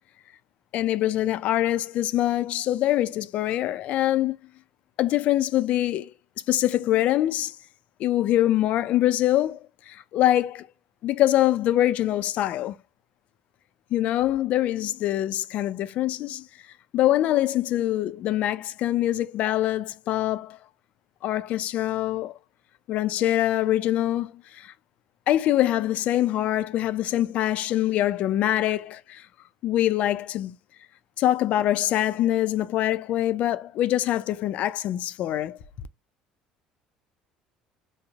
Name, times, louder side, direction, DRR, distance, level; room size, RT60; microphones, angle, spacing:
voice 1, 0.7-4.4 5.0-6.1 6.5-7.6 8.0-10.7 11.0-12.8 13.9-16.5 16.9-20.6 21.2-22.4 22.9-24.7 25.3-29.3 29.6-30.6 31.2-35.6, left 13 dB, 60° left, 0.4 m, -24 dB
5.1 x 2.0 x 2.4 m
hypercardioid pair, 75°, 3 cm